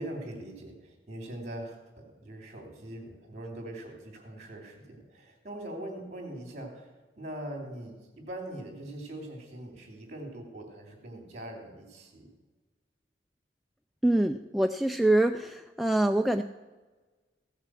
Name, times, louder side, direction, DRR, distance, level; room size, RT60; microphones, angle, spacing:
voice 1, 0.0-1.8 2.1-12.3, right 1 dB, 40° right, 3 dB, 3.1 m, -42 dB
voice 2, 14.0-16.4, right 1 dB, ahead, 5 dB, 0.3 m, -25 dB
16.0 x 6.6 x 7.6 m, 1.3 s
head